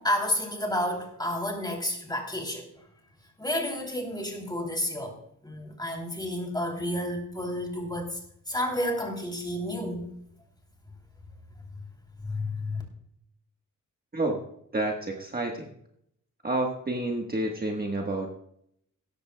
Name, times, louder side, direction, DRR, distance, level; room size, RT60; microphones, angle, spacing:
voice 1, 0.0-2.7 3.4-5.1 5.4-8.2 8.5-10.1 12.2-12.8, left 1 dB, 15° left, 1 dB, 3.0 m, -30 dB
voice 2, 14.7-15.7 16.4-18.3, right 2 dB, 30° right, 0 dB, 1.3 m, -29 dB
17.0 x 13.5 x 2.2 m, 0.72 s
wide cardioid pair, 155°, 32 cm